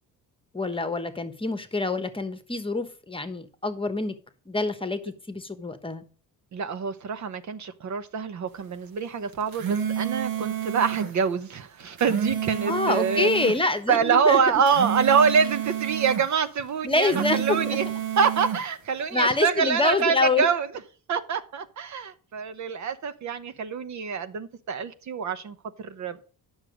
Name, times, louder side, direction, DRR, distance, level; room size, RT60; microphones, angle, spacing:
voice 1, 0.5-4.2 4.5-6.0 12.7-14.4 16.8-17.8 19.1-20.5, left 3 dB, 15° left, 1.1 m, -26 dB
voice 2, 6.5-13.3 13.9-17.8 18.2-20.7 21.1-26.3, right 6 dB, 50° right, 0.9 m, -25 dB
sound 1, 9.3-11.1 11.8-13.6 14.5-16.3 16.9-18.6, right 9 dB, 75° right, 1.8 m, -30 dB
9.7 x 6.4 x 5.0 m
cardioid pair, 105°, 36 cm